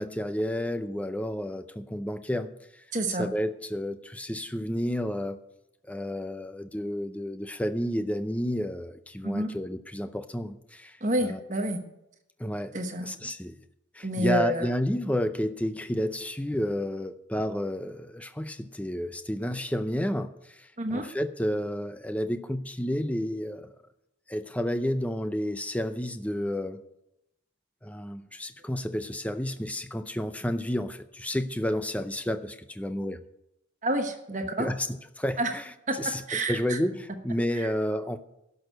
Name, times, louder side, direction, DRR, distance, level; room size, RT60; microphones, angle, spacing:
voice 1, 0.0-5.4 5.9-11.4 12.4-12.7 13.0-13.6 13.9-23.7 24.3-26.8 27.8-33.2 34.6-35.6 36.0-38.2, equal, 5° left, 10 dB, 0.5 m, -31 dB
voice 2, 2.9-3.3 9.2-9.5 11.0-11.8 12.7-13.1 14.0-14.8 20.8-21.1 33.8-34.7 35.4-35.5 35.9-36.0 36.3-36.8 37.5-37.7, right 1 dB, 35° right, 6 dB, 1.1 m, -28 dB
11.5 x 6.4 x 9.1 m, 0.85 s
head